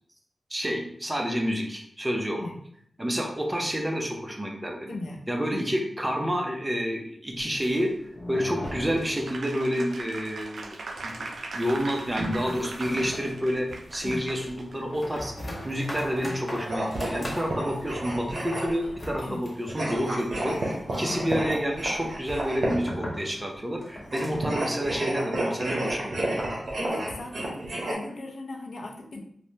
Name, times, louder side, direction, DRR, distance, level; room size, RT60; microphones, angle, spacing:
voice 1, 0.5-2.4 3.0-5.0 5.3-7.9 8.3-10.8 11.0-15.3 15.6-26.3, equal, 15° right, 1 dB, 0.6 m, -29 dB
voice 2, 4.9-5.3 5.5-5.7 14.0-14.3 19.2-19.4 21.0-21.2 26.8-29.2, left 2 dB, 80° left, 0 dB, 0.5 m, -38 dB
sound 1, 7.4-9.7 10.0-10.1 10.4-10.5 11.0-24.6, left 1 dB, 40° left, 0.7 m, -40 dB
Applause, 9.2-14.7, right 3 dB, 85° right, 0.3 m, -39 dB
Lapiz escribiendo, 16.6-18.9 19.7-22.9 24.0-27.9, right 1 dB, 65° right, 0.7 m, -31 dB
3.1 x 2.1 x 2.7 m, 0.67 s
wide cardioid pair, 80°, 0 cm